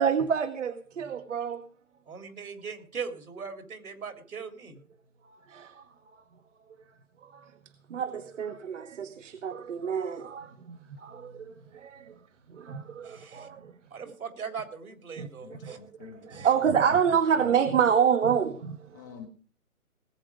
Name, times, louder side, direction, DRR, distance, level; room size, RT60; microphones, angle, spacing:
voice 1, 0.0-1.6 5.5-5.8 7.3-7.4 7.9-12.1 12.5-13.7 15.2-18.8, right 7 dB, 60° right, 1.3 m, -28 dB
voice 2, 2.1-4.8 13.1-13.5 13.9-15.8 16.3-16.7, right 5 dB, 75° right, 3.8 m, -40 dB
voice 3, 15.4-16.3 18.9-19.3, left 8 dB, 15° left, 0.8 m, -47 dB
18.5 x 8.2 x 5.0 m
hypercardioid pair, 155°, 43 cm